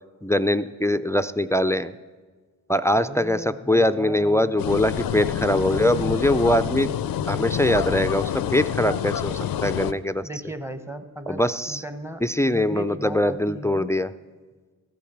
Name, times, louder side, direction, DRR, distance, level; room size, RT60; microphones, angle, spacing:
voice 1, 0.2-1.9 2.7-6.9 7.3-10.3 11.3-11.8 12.2-14.1, left 1 dB, 10° left, 12 dB, 0.3 m, -22 dB
voice 2, 3.0-4.5 10.2-13.9, right 1 dB, 5° right, 10 dB, 0.9 m, -37 dB
sound 1, 4.6-9.9, left 9 dB, 80° left, 0.5 m, -27 dB
14.0 x 7.1 x 6.0 m, 1.4 s
cardioid pair, 55°, 35 cm